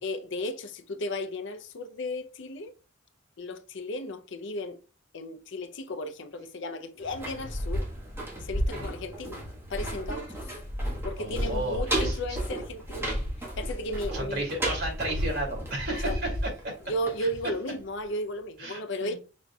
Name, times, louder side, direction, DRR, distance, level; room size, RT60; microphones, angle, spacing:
voice 1, 0.0-2.7 3.4-4.8 5.1-7.9 8.4-9.4 9.7-10.6 11.0-14.5 15.9-16.2 16.9-19.1, left 1 dB, 65° left, 0.6 m, -35 dB
sound 1, 7.0-17.8 18.1-18.2, equal, 10° right, 1.3 m, -33 dB
voice 2, 11.2-12.2 14.1-16.2 16.6-16.7 18.6-19.2, right 1 dB, 55° right, 2.5 m, -33 dB
5.1 x 4.3 x 2.3 m
head